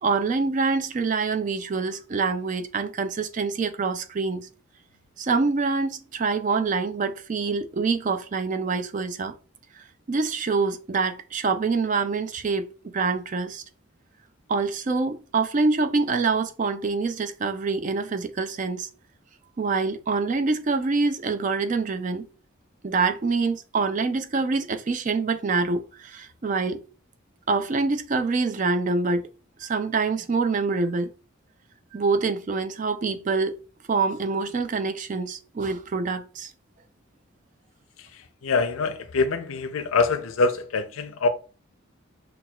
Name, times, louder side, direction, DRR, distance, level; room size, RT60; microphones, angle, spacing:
voice 1, 0.0-4.5 5.2-9.3 10.1-13.6 14.5-18.9 19.6-22.2 22.8-26.8 27.5-29.3 29.6-31.1 31.9-33.6 33.9-36.5, right 4 dB, 40° right, 0.4 m, -25 dB
voice 2, 38.4-41.3, left 4 dB, 85° left, 0.5 m, -24 dB
5.9 x 2.3 x 2.3 m
head